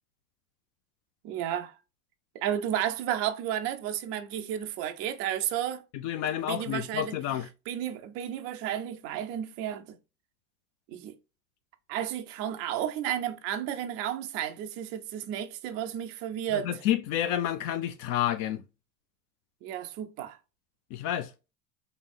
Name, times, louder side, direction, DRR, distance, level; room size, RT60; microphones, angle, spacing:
voice 1, 1.2-1.7 2.4-5.8 6.5-7.1 7.7-10.0 10.9-11.1 11.9-16.7 19.6-20.4, right 10 dB, 35° right, 0.4 m, -32 dB
voice 2, 5.9-7.5 16.5-18.6 20.9-21.3, left 11 dB, 40° left, 0.4 m, -29 dB
3.0 x 2.8 x 2.2 m
hypercardioid pair, 85°, 47 cm